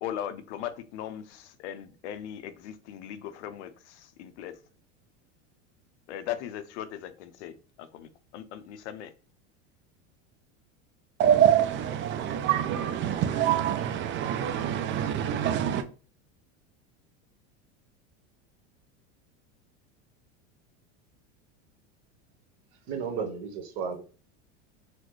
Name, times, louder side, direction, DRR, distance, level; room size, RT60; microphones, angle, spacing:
voice 1, 0.0-4.5 6.1-9.1, left 10 dB, 80° left, 0.6 m, -39 dB
voice 2, 11.2-15.9, right 10 dB, 35° right, 0.4 m, -25 dB
voice 3, 22.9-24.0, right 6 dB, 65° right, 1.1 m, -33 dB
4.1 x 2.1 x 3.0 m
supercardioid pair, 115°, 35 cm